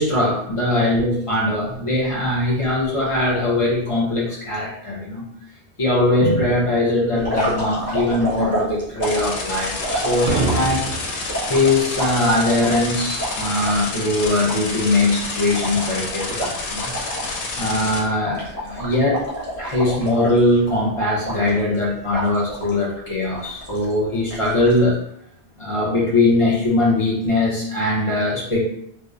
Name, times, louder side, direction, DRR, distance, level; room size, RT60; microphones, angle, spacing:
voice 1, 0.0-5.2 5.8-10.9 11.4-16.9 17.6-19.2 19.6-25.0 25.6-28.6, left 2 dB, 35° left, -5 dB, 0.6 m, -21 dB
sound 1, 7.2-10.8 11.3-13.8 14.2-14.3 14.5-17.4 17.7-17.9 18.2-20.7 21.2-21.8 22.1-22.8 23.3-23.9 24.3-24.8, right 1 dB, 15° right, 0.6 m, -29 dB
sound 2, 9.0-18.0, left 3 dB, 85° left, 0.9 m, -29 dB
sound 3, 10.3-11.3, right 3 dB, 85° right, 0.9 m, -24 dB
2.8 x 2.0 x 2.4 m, 0.69 s
omnidirectional pair, 1.1 m